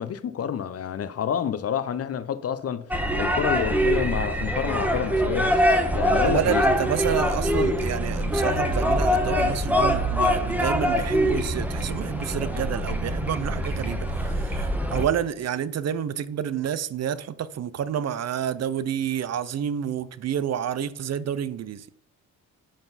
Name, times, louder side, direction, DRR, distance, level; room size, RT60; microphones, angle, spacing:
voice 1, 0.0-2.9 3.1-5.6 5.9-6.6, left 8 dB, 45° left, 0.6 m, -28 dB
sound 1, 2.9-15.1, equal, 5° right, 1.1 m, -24 dB
voice 2, 6.2-22.0, right 9 dB, 50° right, 0.6 m, -29 dB
11.0 x 3.9 x 4.1 m
cardioid pair, 85°, 33 cm